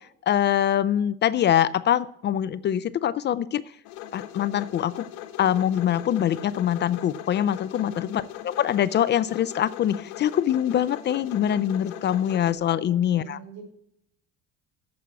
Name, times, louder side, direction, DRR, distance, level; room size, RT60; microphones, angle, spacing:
voice 1, 0.3-3.6 4.1-5.0 5.4-13.4, left 10 dB, 40° left, 17 dB, 0.4 m, -24 dB
sound 1, 3.9-12.5, left 12 dB, 80° left, 1.2 m, -40 dB
voice 2, 7.7-8.0 12.7-13.6, right 5 dB, 60° right, 2 dB, 4.8 m, -44 dB
9.4 x 7.4 x 8.1 m, 0.75 s
cardioid pair, 115°, 29 cm